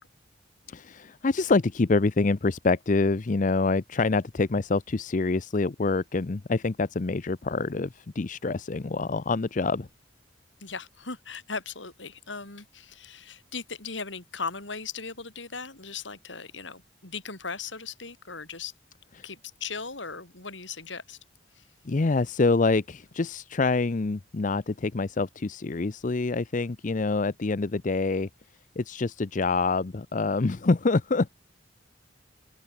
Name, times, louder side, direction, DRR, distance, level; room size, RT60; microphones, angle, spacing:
voice 1, 0.7-9.9 21.9-28.3 28.8-31.3, left 3 dB, 45° left, 0.6 m, -26 dB
voice 2, 10.6-18.7 19.2-21.2 21.5-21.7, left 5 dB, 80° left, 5.7 m, -38 dB
open air
head